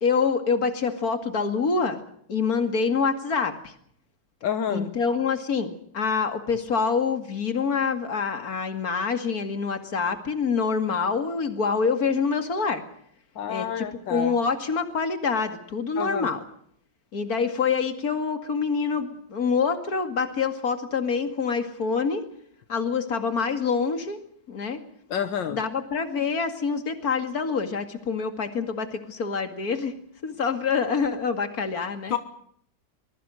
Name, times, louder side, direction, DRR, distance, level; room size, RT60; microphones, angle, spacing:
voice 1, 0.0-2.0 2.3-3.7 4.7-12.8 13.5-16.4 17.1-22.2 22.7-24.2 24.5-24.8 25.5-29.9 30.2-32.1, left 5 dB, 55° left, 8 dB, 2.8 m, -26 dB
voice 2, 4.4-4.9 13.4-14.3 16.0-16.3 25.1-25.6 32.1-32.2, left 8 dB, 80° left, 10 dB, 1.9 m, -29 dB
24.5 x 21.5 x 6.4 m, 0.67 s
omnidirectional pair, 2.0 m